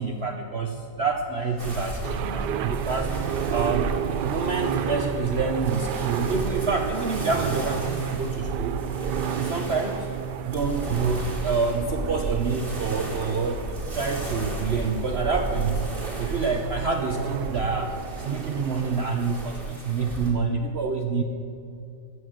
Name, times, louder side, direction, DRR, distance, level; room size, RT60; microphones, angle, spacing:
voice 1, 0.0-3.1 3.5-4.0 4.2-8.8 9.3-10.1 10.4-13.6 13.9-15.9 16.2-21.2, right 4 dB, 50° right, 4 dB, 0.8 m, -27 dB
sound 1, 0.9-13.7, equal, 85° left, 3.2 m, -48 dB
sound 2, 1.6-20.3, right 2 dB, 30° right, 2.5 m, -34 dB
sound 3, 2.0-19.6, right 9 dB, 80° right, 1.2 m, -32 dB
14.0 x 7.8 x 7.5 m, 2.6 s
omnidirectional pair, 1.8 m